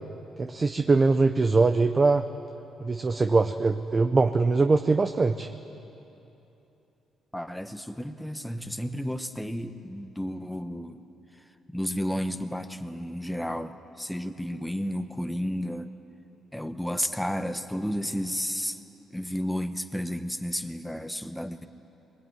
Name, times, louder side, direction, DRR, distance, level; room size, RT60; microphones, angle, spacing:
voice 1, 0.4-2.2 2.8-5.5, right 3 dB, 30° right, 7 dB, 0.8 m, -22 dB
voice 2, 7.3-11.0 11.4-15.9 16.5-18.8 19.1-21.7, equal, 5° left, 7 dB, 1.1 m, -32 dB
22.0 x 20.5 x 9.4 m, 3.0 s
cardioid pair, 90°, 0 cm